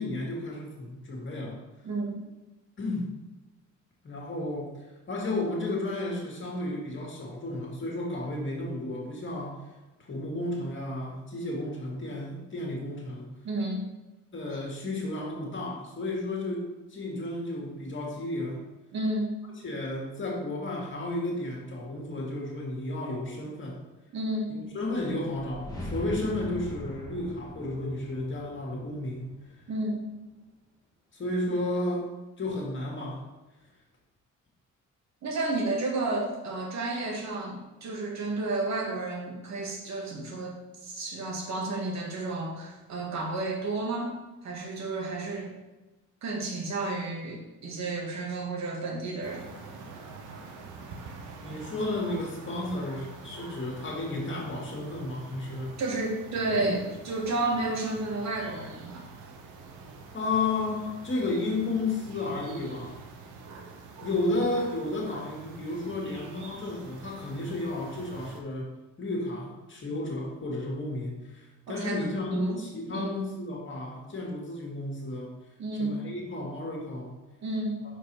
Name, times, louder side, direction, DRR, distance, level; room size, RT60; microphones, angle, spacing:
voice 1, 0.0-1.6 2.8-3.1 4.0-4.7 5.1-9.6 10.0-13.3 14.3-18.6 19.6-23.8 24.5-29.3 31.1-32.1 32.4-33.2 51.4-55.7 56.6-56.8 60.1-63.0 64.0-68.7 69.0-75.3 75.8-77.2, left 2 dB, 40° left, -2 dB, 2.1 m, -32 dB
voice 2, 1.8-2.3 13.4-13.9 18.9-19.3 24.1-24.5 29.7-30.1 35.2-44.1 44.4-45.6 46.2-49.5 55.8-59.0 71.7-72.6 72.9-73.3 75.6-76.0 77.4-77.8, right 2 dB, 65° right, 0 dB, 1.7 m, -31 dB
sound 1, 25.2-30.1, left 1 dB, 10° left, 1.5 m, -41 dB
sound 2, 49.2-68.4, right 4 dB, 85° right, 0.9 m, -46 dB
5.5 x 4.7 x 4.6 m, 1.1 s
cardioid pair, 90°, 30 cm